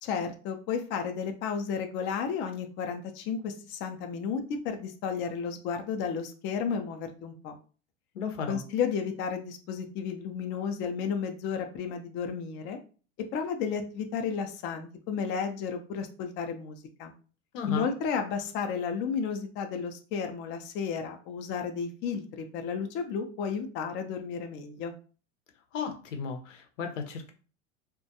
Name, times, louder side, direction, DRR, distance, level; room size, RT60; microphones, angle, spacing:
voice 1, 0.0-7.6 8.5-12.8 13.3-17.1 17.7-24.9, left 6 dB, 30° left, 5 dB, 0.4 m, -33 dB
voice 2, 8.1-8.6 17.5-17.9 25.7-27.3, left 5 dB, 85° left, 5 dB, 0.7 m, -34 dB
2.3 x 2.1 x 2.7 m, 0.37 s
hypercardioid pair, 115°, 36 cm